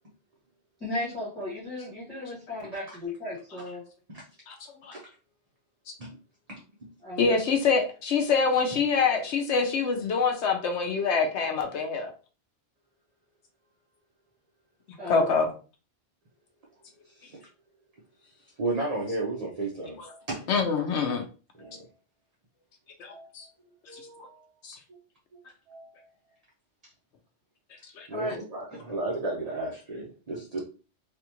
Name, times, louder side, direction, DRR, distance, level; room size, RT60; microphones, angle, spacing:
voice 1, 0.8-3.8 7.0-7.4 15.0-15.3 26.8-26.9 28.1-28.4, left 1 dB, ahead, -10 dB, 1.4 m, -35 dB
voice 2, 7.2-12.1 15.1-15.5 20.5-21.2 23.0-23.4 24.6-24.8 28.0-28.1, left 5 dB, 70° left, 4 dB, 0.9 m, -25 dB
voice 3, 17.0-17.5 18.2-18.3 18.6-20.4 21.6-21.8 23.1-23.3 23.9-24.5 24.9-25.0 25.3-25.4 25.7-25.9 28.1-30.6, right 2 dB, 40° right, -3 dB, 0.7 m, -34 dB
3.4 x 2.4 x 2.9 m, 0.35 s
omnidirectional pair, 1.2 m